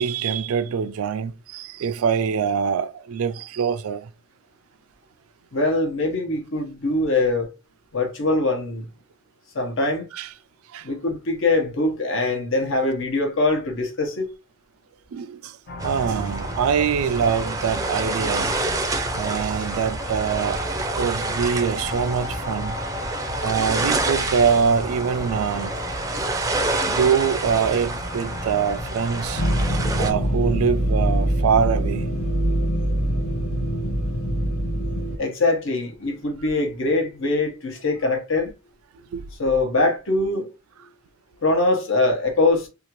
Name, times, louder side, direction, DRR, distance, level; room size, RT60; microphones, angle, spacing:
voice 1, 0.0-4.1 10.1-10.3 10.7-10.9 15.1-15.6 15.8-18.5 19.1-20.6 20.9-22.8 23.4-25.7 26.9-29.4 30.0-32.1 39.1-39.2, right 6 dB, 90° right, 0.3 m, -24 dB
voice 2, 5.5-7.5 7.9-8.9 9.5-10.1 10.8-14.3 35.2-38.5 39.4-40.5 41.4-42.7, left 2 dB, 65° left, 1.0 m, -22 dB
sound 1, 15.7-29.7, left 3 dB, 45° left, 0.5 m, -37 dB
sound 2, 15.8-30.1, right 2 dB, 15° right, 0.4 m, -28 dB
sound 3, 29.3-35.2, equal, 85° left, 0.6 m, -23 dB
2.8 x 2.4 x 2.9 m
head